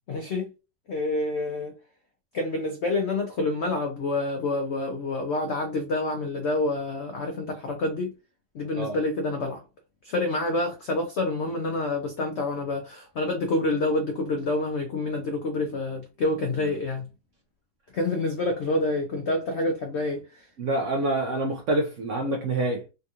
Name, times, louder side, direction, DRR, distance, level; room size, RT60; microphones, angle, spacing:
voice 1, 0.1-0.5 0.9-1.8 2.3-8.1 8.5-9.6 10.0-17.1 17.9-20.5, left 2 dB, 75° left, 0.6 m, -27 dB
voice 2, 20.6-22.9, right 2 dB, 70° right, 0.7 m, -26 dB
3.5 x 2.3 x 2.7 m
omnidirectional pair, 1.8 m